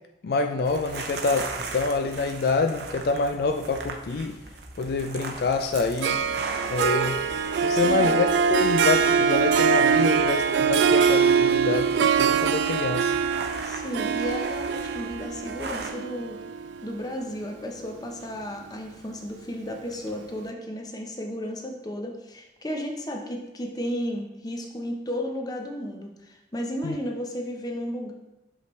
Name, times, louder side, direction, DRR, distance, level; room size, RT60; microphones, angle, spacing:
voice 1, 0.2-4.4 4.8-6.2 6.7-7.2 7.6-13.1 26.8-27.0, left 4 dB, 60° left, 5 dB, 0.3 m, -26 dB
sound 1, 0.7-15.9, right 3 dB, 70° right, 0.7 m, -39 dB
Harp, 6.0-17.4, right 6 dB, 90° right, 0.3 m, -23 dB
voice 2, 7.7-8.1 13.6-16.4 16.8-28.1, equal, 20° left, 2 dB, 0.7 m, -33 dB
6.0 x 5.6 x 3.2 m, 0.95 s
head